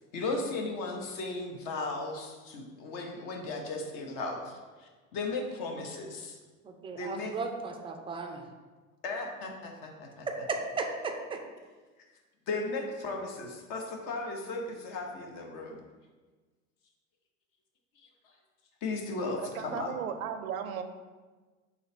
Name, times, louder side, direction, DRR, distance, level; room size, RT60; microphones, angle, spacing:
voice 1, 0.1-4.5 4.8-6.4 6.9-7.4 9.0-10.3 12.5-15.8 18.8-19.9, left 3 dB, 50° left, 2 dB, 0.9 m, -36 dB
voice 2, 6.8-8.4 10.5-11.4, right 3 dB, 15° right, 4 dB, 0.3 m, -35 dB
voice 3, 19.4-20.8, right 8 dB, 80° right, 8 dB, 0.5 m, -36 dB
3.9 x 2.9 x 4.3 m, 1.3 s
hypercardioid pair, 85°, 41 cm